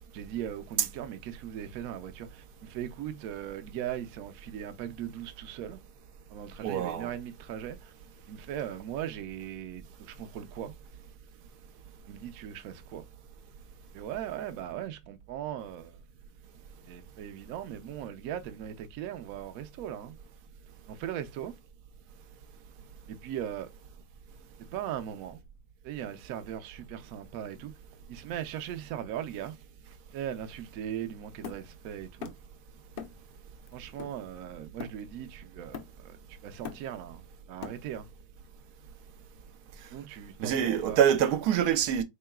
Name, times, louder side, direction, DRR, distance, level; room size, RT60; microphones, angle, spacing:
voice 1, 0.1-5.8 6.3-7.9 8.3-10.7 12.1-13.1 13.9-16.0 16.8-20.2 20.9-21.5 23.1-23.7 24.7-25.4 25.8-27.8 28.1-29.6 30.1-32.3 33.7-37.2 37.5-38.1 39.9-41.0, right 10 dB, 70° right, 1.0 m, -39 dB
voice 2, 6.6-7.1 40.4-42.0, right 9 dB, 85° right, 1.2 m, -25 dB
Hammer, 31.4-32.6 33.0-33.3 33.7-35.3 35.7-36.2 36.5-38.1, left 7 dB, 70° left, 0.5 m, -43 dB
3.8 x 3.6 x 2.3 m
omnidirectional pair, 1.7 m